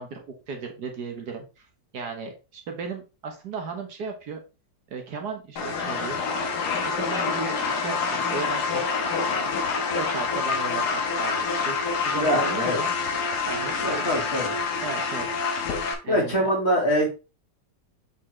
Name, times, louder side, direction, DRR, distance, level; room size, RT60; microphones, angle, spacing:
voice 1, 0.0-1.7 1.9-4.4 4.9-6.2 6.8-8.9 9.3-9.5 9.9-11.8 12.1-12.9 13.4-14.1 14.4-15.3 16.0-16.5, right 5 dB, 65° right, 3 dB, 1.6 m, -35 dB
sound 1, 5.6-15.9, left 5 dB, 65° left, 1.6 m, -27 dB
voice 2, 12.1-12.8 13.8-14.5 16.1-17.1, equal, 35° left, -3 dB, 2.5 m, -24 dB
7.5 x 4.1 x 3.2 m, 0.30 s
omnidirectional pair, 2.0 m